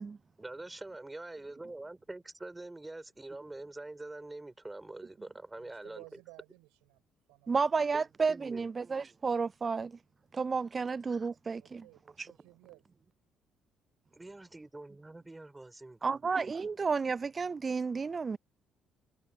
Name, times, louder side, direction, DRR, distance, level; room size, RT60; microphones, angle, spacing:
voice 1, 0.4-6.2 7.9-8.0 8.3-8.7 14.1-16.1, right 2 dB, 15° right, 6.1 m, -45 dB
voice 2, 5.6-7.0 7.3-7.8 11.6-12.8, right 27 dB, 80° right, 5.9 m, -56 dB
voice 3, 7.5-9.9 10.3-11.8 12.2-12.3 16.0-18.4, right 5 dB, 35° right, 0.3 m, -32 dB
hypercardioid pair, 50°, 0 cm